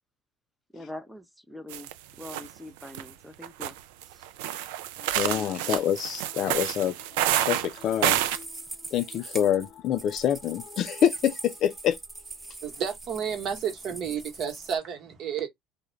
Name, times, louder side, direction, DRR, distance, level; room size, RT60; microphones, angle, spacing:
voice 1, 0.7-1.9 2.2-3.8 4.0-4.3, left 1 dB, ahead, 0.6 m, -43 dB
sound 1, 1.7-1.9 2.2-2.5 2.8-3.0 3.4-8.4, right 13 dB, 75° right, 0.3 m, -28 dB
voice 2, 5.0-8.5 8.9-12.0, left 10 dB, 55° left, 0.4 m, -27 dB
sound 2, 7.7-14.8, right 2 dB, 20° right, 0.9 m, -42 dB
voice 3, 12.6-15.5, right 7 dB, 55° right, 1.0 m, -31 dB
2.3 x 2.0 x 3.1 m
hypercardioid pair, 70°, 0 cm